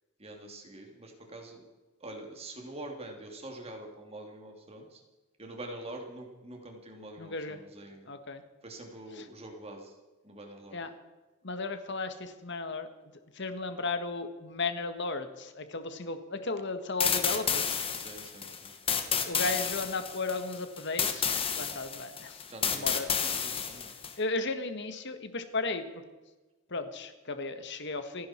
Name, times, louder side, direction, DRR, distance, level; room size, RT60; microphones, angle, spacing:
voice 1, 0.2-1.6 2.0-5.0 5.4-8.1 8.6-10.0 10.2-10.8 17.9-18.7 22.4-23.9, right 1 dB, 30° right, 2 dB, 2.9 m, -45 dB
voice 2, 7.2-7.6 8.1-8.4 9.2-9.3 10.7-10.9 11.4-12.9 13.3-17.8 19.2-22.4 22.7-23.2 24.2-26.0 26.7-28.3, left 3 dB, 60° left, 9 dB, 1.6 m, -35 dB
sound 1, 17.0-24.1, left 7 dB, 25° left, 1.4 m, -31 dB
28.5 x 10.5 x 4.5 m, 1.2 s
head